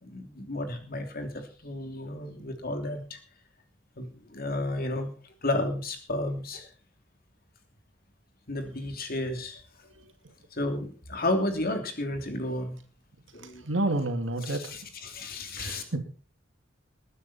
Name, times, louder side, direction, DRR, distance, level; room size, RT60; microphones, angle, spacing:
voice 1, 0.0-3.2 4.0-5.1 5.4-6.7 8.5-9.6 10.5-12.8 13.3-13.7 14.4-15.8, left 1 dB, 50° left, 6 dB, 3.1 m, -32 dB
voice 2, 13.6-14.6 15.6-16.0, right 2 dB, 75° right, 6 dB, 2.7 m, -29 dB
20.5 x 9.7 x 4.3 m, 0.40 s
head